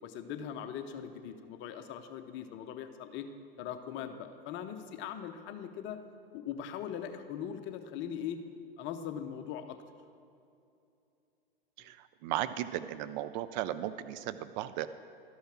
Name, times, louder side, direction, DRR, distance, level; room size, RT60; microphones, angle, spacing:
voice 1, 0.0-3.3 3.6-6.0 6.3-8.4 8.8-9.8, left 9 dB, 40° left, 8 dB, 0.8 m, -40 dB
voice 2, 11.8-14.9, right 13 dB, 50° right, 13 dB, 0.4 m, -36 dB
12.5 x 5.7 x 5.9 m, 2.6 s
hypercardioid pair, 100°, 30 cm